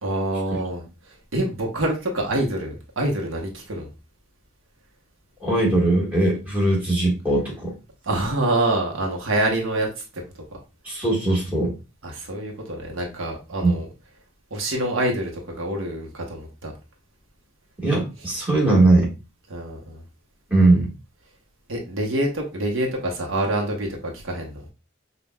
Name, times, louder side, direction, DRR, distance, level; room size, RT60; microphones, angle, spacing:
voice 1, 0.0-0.8 1.3-3.9 8.1-10.2 12.0-13.9 14.5-16.7 19.5-20.0 21.7-24.6, right 1 dB, 80° right, 1 dB, 0.8 m, -26 dB
voice 2, 5.4-7.7 10.8-11.7 13.6-13.8 17.8-19.1 20.5-20.9, right 2 dB, 10° right, -5 dB, 1.4 m, -20 dB
5.3 x 2.2 x 2.2 m, 0.29 s
head